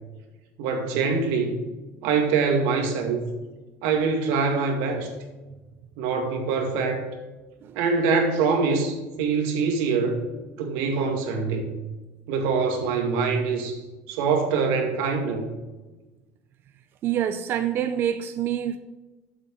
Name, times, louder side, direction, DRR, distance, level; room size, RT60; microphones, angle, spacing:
voice 1, 0.6-1.6 2.0-3.3 3.8-5.1 6.0-7.0 7.8-10.2 10.6-11.6 12.3-13.8 14.1-15.5, right 5 dB, 75° right, 2.1 m, -24 dB
voice 2, 17.0-18.8, right 10 dB, 35° right, 0.4 m, -26 dB
7.9 x 6.3 x 7.6 m
cardioid pair, 160°, 6 cm